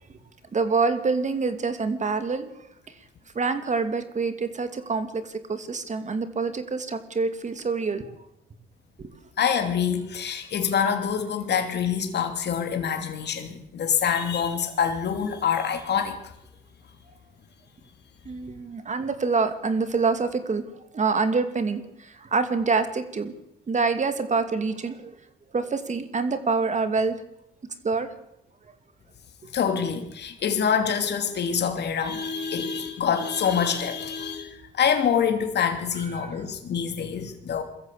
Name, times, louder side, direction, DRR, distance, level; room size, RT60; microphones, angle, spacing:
voice 1, 0.5-2.5 3.3-8.0 9.0-9.1 18.3-20.6 20.9-23.3 23.7-25.1 25.5-27.1 27.8-28.1 36.2-36.3, right 4 dB, 35° right, 9 dB, 2.5 m, -26 dB
voice 2, 9.4-16.2 29.5-37.6, left 7 dB, 60° left, 5 dB, 2.9 m, -26 dB
22.5 x 14.0 x 8.5 m, 0.83 s
cardioid pair, 90°, 20 cm